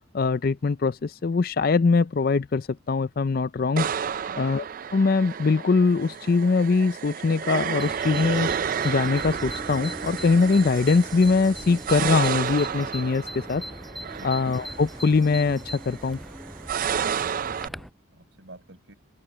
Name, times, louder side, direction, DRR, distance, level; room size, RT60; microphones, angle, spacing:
voice 1, 0.1-3.9 4.4-4.6 4.9-8.5 8.8-13.6 14.2-16.2, left 4 dB, 45° left, 0.4 m, -22 dB
sound 1, 3.8-17.7, right 7 dB, 45° right, 0.3 m, -31 dB
Bird vocalization bird call bird song, 7.8-17.9, equal, ahead, 6.1 m, -40 dB
voice 2, 17.0-18.9, right 1 dB, 60° right, 6.1 m, -48 dB
open air
head